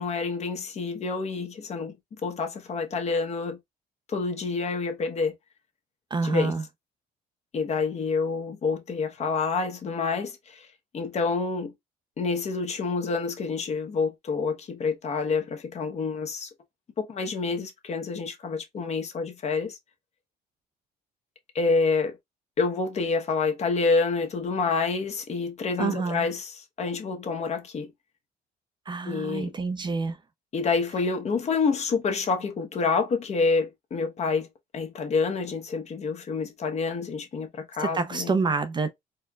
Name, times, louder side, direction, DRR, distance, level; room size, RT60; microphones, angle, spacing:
voice 1, 0.0-1.9 2.2-3.6 4.1-5.3 6.2-6.5 7.5-10.7 10.9-11.7 12.2-16.5 17.0-19.7 21.5-22.2 22.6-27.9 29.1-29.5 30.5-34.5 34.7-38.3, left 4 dB, 40° left, 1.0 m, -28 dB
voice 2, 6.1-6.6 25.8-26.3 28.9-30.1 37.8-38.9, right 4 dB, 25° right, 0.5 m, -27 dB
4.3 x 2.2 x 2.3 m
cardioid pair, 110°, 17 cm